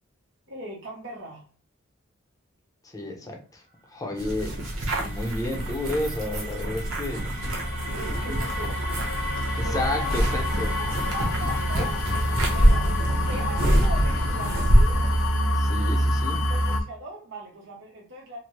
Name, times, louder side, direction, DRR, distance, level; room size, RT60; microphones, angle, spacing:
voice 1, 0.5-1.5 7.8-9.2 9.6-10.4 10.8-12.0 12.5-15.0 16.5-18.4, right 1 dB, 60° right, -2 dB, 0.8 m, -39 dB
voice 2, 2.9-3.6 3.9-4.6 5.0-7.2 8.3-8.4 9.6-10.7 11.8-11.9 15.5-16.4, left 2 dB, 15° left, 2 dB, 0.7 m, -31 dB
sound 1, 3.8-15.8, right 2 dB, 35° right, 0.6 m, -41 dB
sound 2, 4.2-15.3, equal, 90° right, 1.0 m, -25 dB
sound 3, 7.4-16.8, left 1 dB, 80° left, 0.5 m, -27 dB
2.8 x 2.7 x 3.0 m, 0.40 s
head